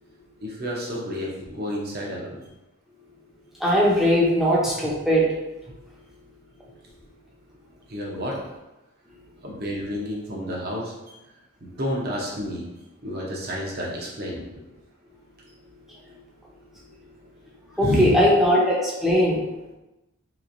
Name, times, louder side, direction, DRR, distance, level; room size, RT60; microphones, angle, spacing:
voice 1, 0.4-2.4 7.9-8.4 9.4-10.9 11.8-12.6 13.0-14.4 17.8-18.3, equal, 45° right, -3 dB, 0.7 m, -29 dB
voice 2, 3.6-5.3 17.8-19.4, equal, ahead, -5 dB, 0.6 m, -19 dB
3.2 x 3.0 x 2.6 m, 1.0 s
head